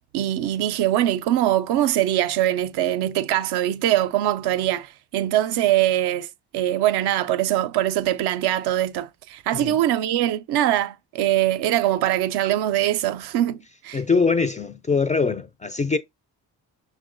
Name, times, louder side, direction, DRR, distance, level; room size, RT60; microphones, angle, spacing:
voice 1, 0.1-6.3 6.5-14.0, right 13 dB, 65° right, 0.5 m, -22 dB
voice 2, 13.9-16.0, left 4 dB, 20° left, 0.3 m, -22 dB
5.7 x 2.2 x 2.5 m
hypercardioid pair, 50°, 43 cm